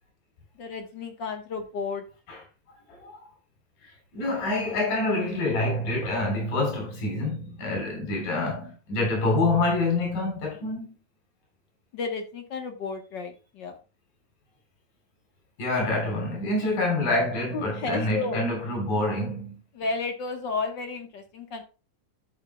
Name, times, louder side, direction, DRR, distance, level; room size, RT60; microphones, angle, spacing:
voice 1, 0.6-2.0 11.9-13.8 17.5-18.4 19.7-21.6, left 4 dB, 55° left, 1.2 m, -32 dB
voice 2, 4.1-10.9 15.6-19.5, left 2 dB, 85° left, 5.4 m, -26 dB
11.5 x 7.5 x 2.3 m
omnidirectional pair, 3.7 m